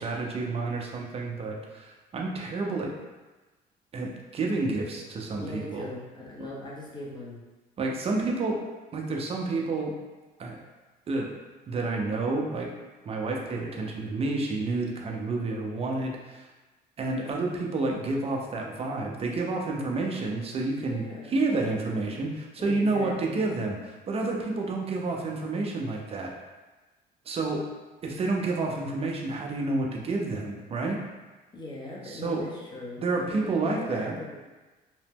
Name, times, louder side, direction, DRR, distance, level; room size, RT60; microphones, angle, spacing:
voice 1, 0.0-2.9 3.9-5.9 7.8-8.6 8.9-9.9 10.4-10.6 11.1-11.3 11.7-12.7 13.0-16.5 17.0-23.8 24.1-26.3 27.3-27.6 28.0-31.0 32.1-32.5 33.0-34.2, right 3 dB, 35° right, 0 dB, 0.5 m, -29 dB
voice 2, 5.4-7.4 20.8-21.4 22.6-23.5 31.5-34.4, left 1 dB, 25° left, -4 dB, 0.7 m, -40 dB
2.9 x 2.0 x 3.4 m, 1.2 s
cardioid pair, 110°, 17 cm